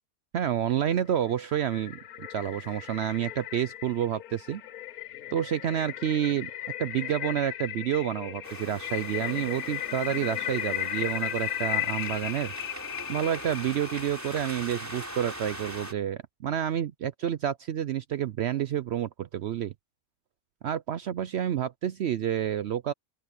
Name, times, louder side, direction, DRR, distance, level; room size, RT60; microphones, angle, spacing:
voice 1, 0.3-4.6 5.3-6.5 6.8-12.5 13.1-19.7 20.6-22.9, right 10 dB, 65° right, 0.7 m, -29 dB
sound 1, 1.0-14.4, left 13 dB, 85° left, 1.3 m, -36 dB
sound 2, 8.4-15.9, equal, 10° right, 3.9 m, -41 dB
open air
omnidirectional pair, 1.5 m